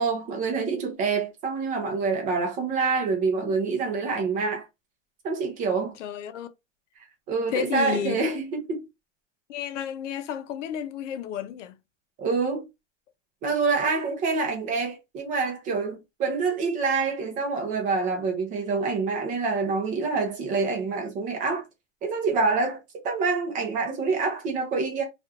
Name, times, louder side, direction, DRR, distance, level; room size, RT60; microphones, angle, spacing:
voice 1, 0.0-4.7 5.2-6.0 7.3-8.8 12.2-12.7 13.4-21.6 22.0-25.0, right 4 dB, 20° right, 0.5 m, -26 dB
voice 2, 6.0-6.5 7.5-8.2 9.5-11.8 13.9-14.0, left 9 dB, 70° left, 0.6 m, -32 dB
2.7 x 2.4 x 2.3 m
supercardioid pair, 145°, 38 cm